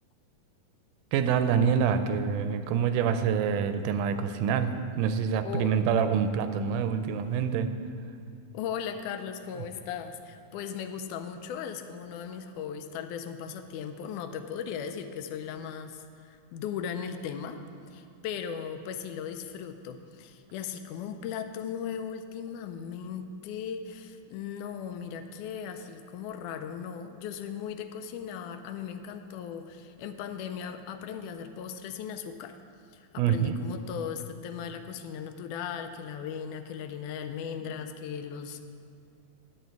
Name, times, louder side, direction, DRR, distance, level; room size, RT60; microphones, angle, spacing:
voice 1, 1.1-7.7 33.2-33.6, right 7 dB, 85° right, 9 dB, 2.1 m, -26 dB
voice 2, 5.4-5.7 8.5-17.6 17.9-32.6 32.9-38.6, left 7 dB, 85° left, 8 dB, 2.0 m, -37 dB
11.0 x 8.1 x 4.6 m, 2.3 s
omnidirectional pair, 3.6 m